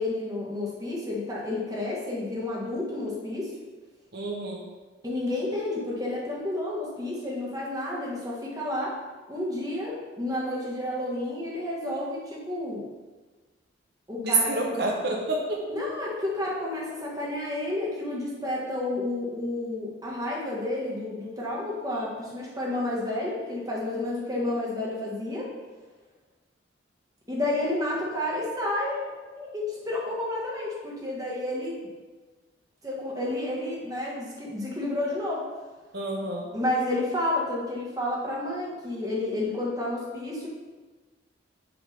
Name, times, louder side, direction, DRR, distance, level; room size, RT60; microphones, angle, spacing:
voice 1, 0.0-3.5 5.0-9.0 9.3-12.8 14.1-14.8 15.7-25.5 27.3-31.8 32.8-35.4 36.5-40.5, left 1 dB, 20° right, -4 dB, 1.4 m, -30 dB
voice 2, 4.1-4.6 14.2-15.6 35.9-36.5, right 2 dB, 55° right, -1 dB, 0.9 m, -28 dB
7.1 x 3.6 x 5.1 m, 1.3 s
head